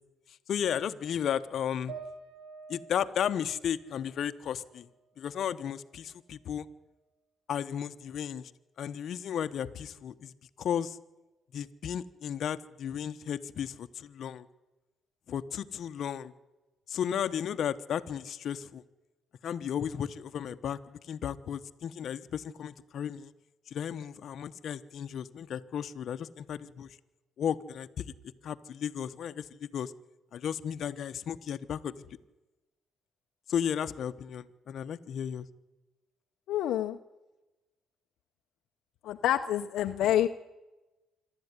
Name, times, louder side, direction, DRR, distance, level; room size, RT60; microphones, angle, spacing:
voice 1, 0.5-1.9 2.7-4.9 5.2-6.7 7.5-8.5 8.8-11.0 11.5-14.5 15.3-16.3 16.9-18.8 19.4-23.3 23.7-26.9 27.4-28.0 28.4-29.9 30.3-31.9 33.5-35.5, left 9 dB, 65° left, 10 dB, 1.1 m, -34 dB
sound 1, 1.9-5.3 5.7-6.7, right 5 dB, 75° right, 4.1 m, -50 dB
voice 2, 36.5-37.0 39.0-40.3, left 12 dB, 85° left, 6 dB, 0.8 m, -27 dB
26.0 x 12.5 x 9.7 m, 1.1 s
cardioid pair, 90°, 0 cm